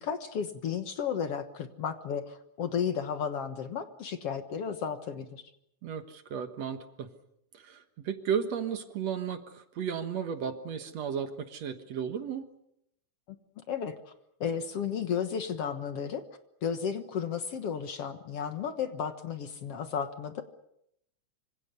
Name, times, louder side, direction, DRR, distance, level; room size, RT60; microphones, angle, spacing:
voice 1, 0.0-5.4 13.7-14.0 14.4-16.2 16.6-20.4, left 7 dB, 55° left, 8 dB, 2.1 m, -33 dB
voice 2, 5.8-7.1 7.5-12.5, right 7 dB, 60° right, 8 dB, 2.4 m, -34 dB
26.0 x 26.0 x 6.9 m, 0.78 s
omnidirectional pair, 3.6 m